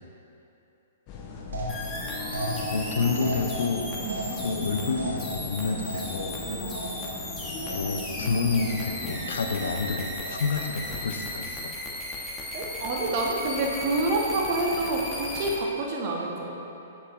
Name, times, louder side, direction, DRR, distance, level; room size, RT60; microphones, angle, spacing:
sound 1, 1.1-11.6, left 3 dB, 40° left, 0.9 m, -39 dB
sound 2, 1.5-7.3 7.6-8.1 8.4-9.0 9.3-9.9 10.2-10.8, right 2 dB, 75° right, 1.5 m, -37 dB
sound 3, 1.7-15.6, left 1 dB, 10° left, 1.0 m, -36 dB
voice 1, 2.7-3.9 4.4-6.4 7.7-11.8, left 4 dB, 70° left, 5 dB, 0.5 m, -29 dB
voice 2, 12.5-16.5, right 2 dB, 45° right, -2 dB, 1.1 m, -28 dB
7.1 x 6.5 x 3.0 m, 2.8 s
hypercardioid pair, 120°, 0 cm